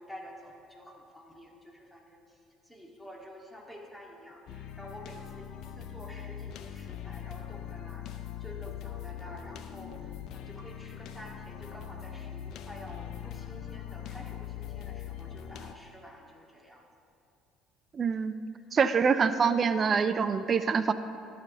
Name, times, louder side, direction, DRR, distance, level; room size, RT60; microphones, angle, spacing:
voice 1, 0.0-2.2 2.6-8.1 8.4-16.8, equal, 5° left, -1 dB, 1.9 m, -49 dB
sound 1, 4.5-15.7, left 10 dB, 60° left, 0.5 m, -41 dB
voice 2, 17.9-18.3 18.7-20.9, right 6 dB, 40° right, 12 dB, 0.4 m, -25 dB
11.5 x 5.0 x 6.7 m, 2.5 s
hypercardioid pair, 60°, 0 cm